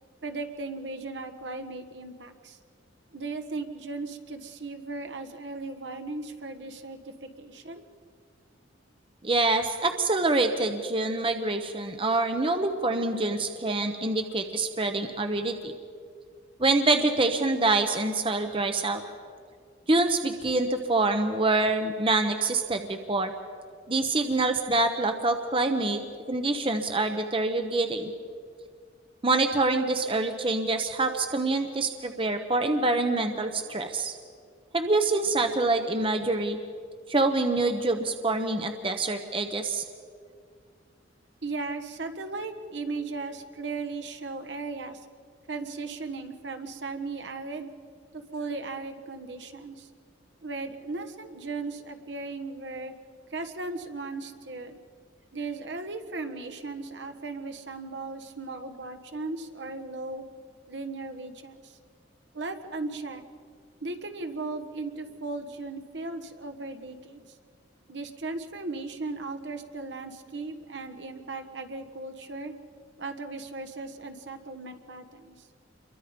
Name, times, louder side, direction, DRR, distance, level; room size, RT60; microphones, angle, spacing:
voice 1, 0.2-2.6 3.1-7.8 41.4-45.0 45.5-47.7 48.1-49.9 50.4-52.9 53.3-54.8 55.3-60.2 60.7-61.8 62.3-63.2 63.8-67.2 67.9-72.5 73.0-75.5, right 3 dB, 60° right, 6 dB, 1.4 m, -37 dB
voice 2, 9.2-15.7 16.6-19.0 19.9-23.3 23.9-26.0 26.3-28.1 29.2-34.1 34.7-36.6 37.1-39.8, right 2 dB, 30° right, 6 dB, 1.0 m, -26 dB
27.5 x 23.0 x 5.3 m, 2.1 s
head